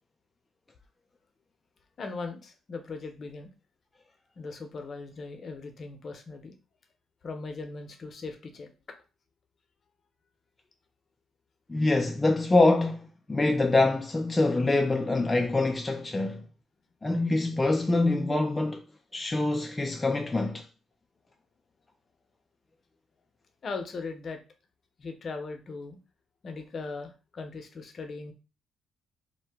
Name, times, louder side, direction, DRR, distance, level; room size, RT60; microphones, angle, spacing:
voice 1, 2.0-3.5 4.4-6.5 7.2-8.7 19.1-19.7 20.0-20.1 23.6-24.4 25.0-26.0 26.4-28.3, left 4 dB, 45° left, 0.6 m, -39 dB
voice 2, 11.7-16.4 17.0-18.8 19.1-20.7, left 2 dB, 20° left, 0.3 m, -25 dB
2.7 x 2.1 x 3.4 m
cardioid pair, 90°, 0 cm